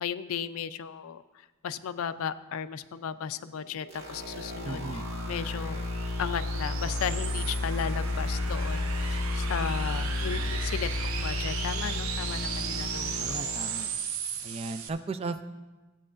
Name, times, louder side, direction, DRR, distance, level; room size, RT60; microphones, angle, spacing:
voice 1, 0.0-5.0 5.3-5.8 6.2-13.3, left 7 dB, 80° left, 13 dB, 0.4 m, -35 dB
sound 1, 3.2-14.9, right 7 dB, 80° right, 0.6 m, -37 dB
sound 2, 3.9-13.9, left 2 dB, 55° right, 1.9 m, -32 dB
voice 2, 4.6-5.0 13.2-13.9 14.4-15.5, right 3 dB, 30° right, 10 dB, 0.3 m, -36 dB
sound 3, 8.0-13.4, equal, 5° right, 0.7 m, -46 dB
14.5 x 8.4 x 2.5 m, 1.2 s
head